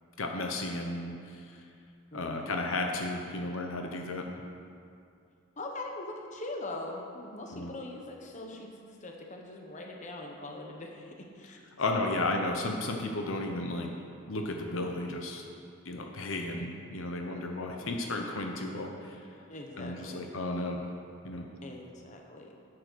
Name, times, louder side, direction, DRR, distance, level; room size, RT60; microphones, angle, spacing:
voice 1, 0.2-1.5 2.1-4.2 7.5-7.7 11.8-13.9 14.3-15.4 15.8-19.2 19.8-20.8 21.2-21.4, left 2 dB, 65° left, 2 dB, 0.9 m, -33 dB
voice 2, 2.1-2.6 5.6-11.6 12.2-12.3 19.5-20.3 21.6-22.5, left 2 dB, 35° left, 1 dB, 1.1 m, -42 dB
10.5 x 7.7 x 6.2 m, 2.4 s
head